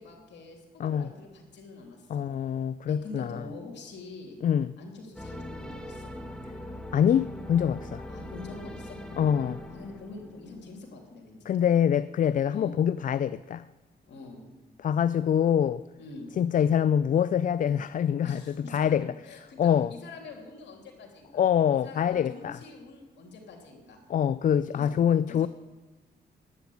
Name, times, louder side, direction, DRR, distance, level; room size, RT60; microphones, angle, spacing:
voice 1, 0.0-2.3 2.9-4.4 4.8-6.1 8.1-9.0 9.7-11.5 12.5-12.8 14.1-14.4 16.0-16.3 18.2-21.4 21.8-24.0 24.7-24.9 25.3-25.5, left 3 dB, 75° left, 3.1 m, -45 dB
voice 2, 2.1-3.4 4.4-4.7 6.9-8.0 9.2-9.6 11.5-13.6 14.8-15.8 16.4-18.4 18.7-19.1 19.6-19.9 21.3-22.6 24.1-25.5, left 9 dB, 45° left, 0.4 m, -25 dB
sound 1, 5.2-10.7, left 1 dB, 5° left, 1.6 m, -41 dB
11.0 x 8.1 x 9.2 m
cardioid pair, 75°, 18 cm